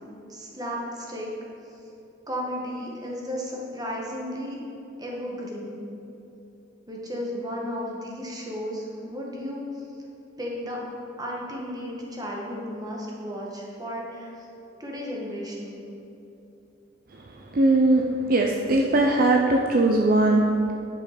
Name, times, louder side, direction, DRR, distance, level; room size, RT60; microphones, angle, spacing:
voice 1, 0.0-1.3 2.3-4.6 5.0-5.8 6.9-9.9 10.4-10.8 11.2-14.3 14.8-15.8, equal, 20° right, -2 dB, 1.4 m, -34 dB
voice 2, 17.1-20.7, right 2 dB, 50° right, 1 dB, 0.5 m, -21 dB
10.0 x 5.4 x 5.1 m, 2.9 s
head